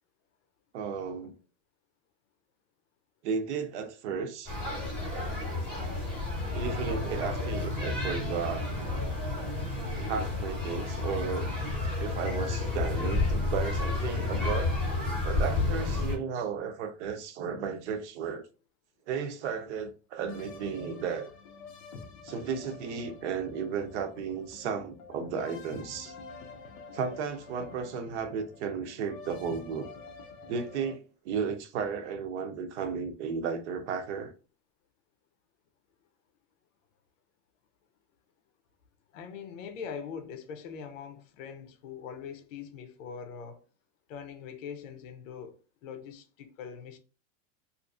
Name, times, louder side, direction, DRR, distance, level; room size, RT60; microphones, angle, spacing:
voice 1, 0.7-1.3 3.2-4.6 6.5-8.7 10.1-11.5 12.0-14.8 15.2-18.4 19.1-21.3 22.2-26.1 26.9-29.9 30.5-34.3, right 6 dB, 65° right, 0.6 m, -34 dB
sound 1, 4.5-16.2, left 3 dB, 5° left, 0.7 m, -31 dB
sound 2, 20.3-31.0, left 4 dB, 40° left, 0.4 m, -48 dB
voice 2, 39.1-43.7 44.1-47.0, left 7 dB, 80° left, 0.7 m, -42 dB
2.8 x 2.5 x 2.4 m
supercardioid pair, 180°, 37 cm